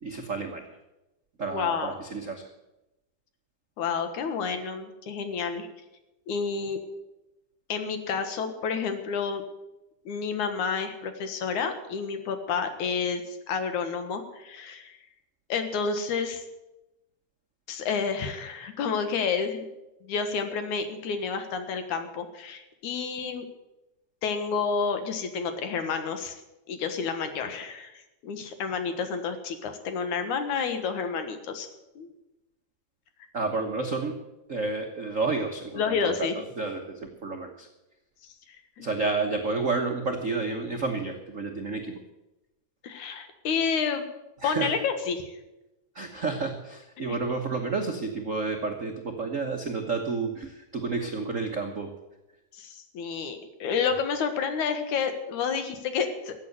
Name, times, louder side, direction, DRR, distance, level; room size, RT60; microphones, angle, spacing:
voice 1, 0.0-0.8 1.4-2.5 33.3-34.2 34.5-37.7 38.8-42.0 44.4-44.7 45.9-51.9, right 3 dB, 80° right, 2 dB, 0.7 m, -30 dB
voice 2, 1.5-2.0 3.8-5.7 6.3-6.8 7.7-9.4 10.1-15.0 15.5-16.4 17.7-19.6 20.0-23.5 24.2-26.4 26.7-31.7 32.0-32.1 35.7-36.4 38.2-38.9 42.8-44.1 44.4-45.4 52.5-56.3, left 5 dB, 75° left, 8 dB, 2.8 m, -30 dB
15.0 x 8.6 x 8.0 m, 0.97 s
omnidirectional pair, 3.5 m